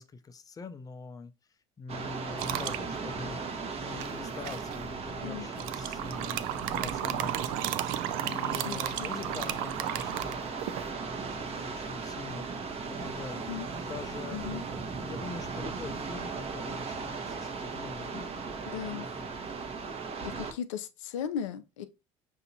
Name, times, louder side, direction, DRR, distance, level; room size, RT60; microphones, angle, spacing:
voice 1, 0.0-1.3 1.8-3.4 3.8-6.4 6.7-10.4 10.9-12.5 12.9-14.4 14.8-18.4 18.7-19.4, left 5 dB, 25° left, 0.5 m, -44 dB
sound 1, 1.9-20.5, right 4 dB, 40° right, 0.9 m, -37 dB
sound 2, 2.4-2.8 4.0-4.8 5.5-10.9, right 13 dB, 70° right, 0.4 m, -34 dB
voice 2, 8.7-9.1 13.5-13.7 14.3-14.6 18.7-19.1 20.2-21.9, left 9 dB, 85° left, 0.4 m, -37 dB
5.7 x 2.7 x 2.7 m
hypercardioid pair, 75°, 16 cm